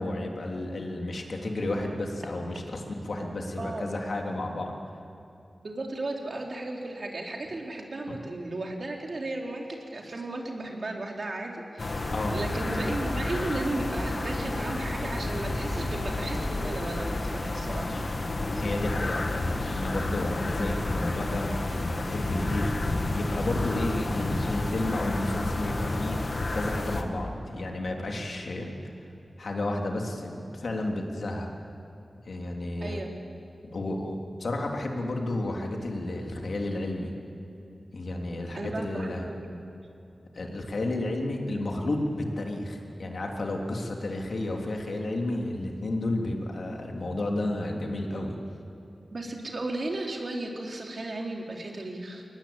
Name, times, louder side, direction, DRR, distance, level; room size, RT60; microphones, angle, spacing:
voice 1, 0.0-4.7 12.1-12.4 18.6-22.6 23.1-26.2 26.5-28.7 29.4-31.5 32.2-33.0 33.7-37.1 37.9-39.3 40.3-48.3, left 2 dB, 75° left, 1 dB, 3.3 m, -32 dB
voice 2, 3.6-4.0 5.6-17.9 32.8-33.1 38.5-39.6 49.1-52.2, right 2 dB, 60° right, 0 dB, 3.7 m, -35 dB
sound 1, 11.8-27.0, left 2 dB, 55° left, 2.1 m, -30 dB
22.5 x 19.0 x 9.0 m, 2.8 s
cardioid pair, 50°, 0 cm